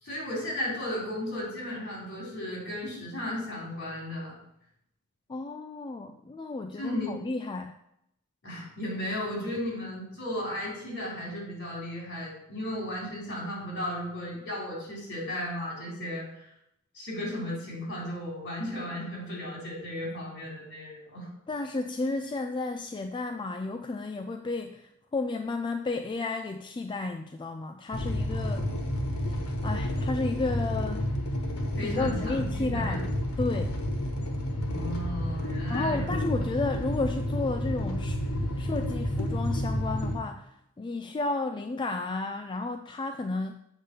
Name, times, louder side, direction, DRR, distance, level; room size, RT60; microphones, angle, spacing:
voice 1, 0.0-4.3 6.8-7.2 8.4-16.4 16.9-21.3 31.8-33.0 34.6-36.2, left 1 dB, 55° left, -3 dB, 3.6 m, -35 dB
voice 2, 5.3-7.7 21.5-28.7 29.2-31.1 31.8-33.1 33.4-33.8 35.7-43.5, left 3 dB, 20° left, 6 dB, 0.3 m, -32 dB
sound 1, 27.9-40.2, left 1 dB, 85° left, 1.4 m, -30 dB
8.0 x 3.9 x 6.6 m, 0.80 s
head